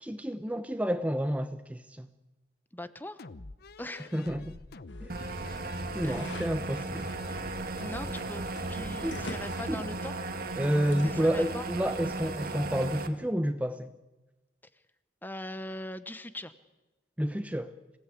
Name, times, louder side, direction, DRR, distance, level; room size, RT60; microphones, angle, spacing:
voice 1, 0.0-2.1 4.1-4.6 5.0-5.1 5.9-7.1 9.0-9.2 9.7-9.8 10.6-13.9 17.2-17.7, equal, 10° right, 0.8 m, -30 dB
voice 2, 2.7-3.2 3.8-4.1 6.0-6.2 7.8-10.2 11.0-11.6 15.2-16.5, left 1 dB, 10° left, 1.0 m, -41 dB
sound 1, 3.2-9.4, left 3 dB, 60° left, 0.8 m, -47 dB
sound 2, 4.9-11.0, left 2 dB, 90° left, 1.2 m, -48 dB
sound 3, 5.1-13.1, right 2 dB, 55° right, 1.9 m, -36 dB
27.0 x 17.5 x 8.4 m
head